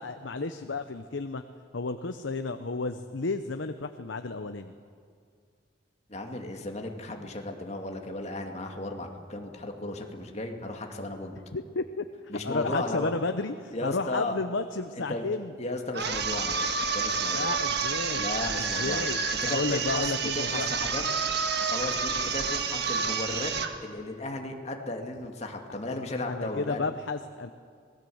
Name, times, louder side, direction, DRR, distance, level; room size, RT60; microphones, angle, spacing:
voice 1, 0.0-1.4 1.7-4.7 11.5-12.1 12.4-15.5 17.3-18.3 18.6-19.2 19.5-20.7 26.3-27.5, left 3 dB, 75° left, 8 dB, 0.8 m, -32 dB
voice 2, 6.1-11.4 12.3-13.1 13.7-14.4 14.9-15.3 15.6-17.6 18.1-19.0 19.4-20.0 20.4-21.0 21.6-23.5 23.8-26.8, left 2 dB, 35° left, 3 dB, 2.3 m, -35 dB
sound 1, 15.9-23.8, right 5 dB, 60° right, 1.6 m, -29 dB
26.5 x 19.5 x 7.9 m, 2.2 s
head